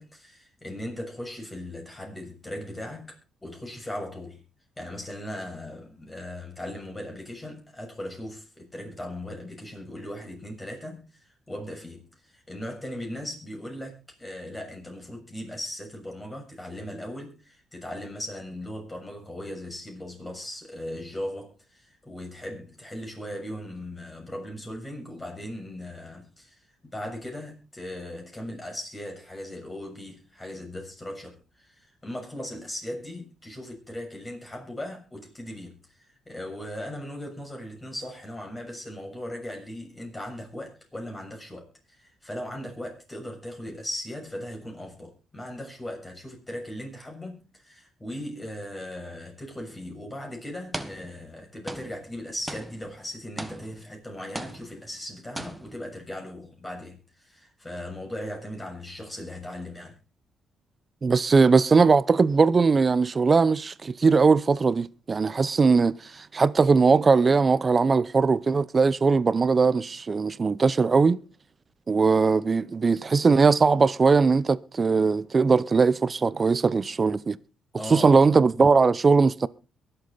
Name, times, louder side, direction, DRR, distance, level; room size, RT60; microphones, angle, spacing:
voice 1, 0.0-4.4 4.8-36.0 36.3-60.0 77.7-78.3, left 1 dB, 20° left, 6.8 m, -38 dB
sound 1, 49.7-49.9 50.7-51.4 51.7-54.0 54.4-55.1 55.4-55.9, right 1 dB, 5° right, 1.5 m, -39 dB
voice 2, 61.0-71.2 71.9-77.4 77.9-79.5, right 4 dB, 35° right, 0.7 m, -20 dB
23.0 x 8.0 x 4.1 m
cardioid pair, 90°, 0 cm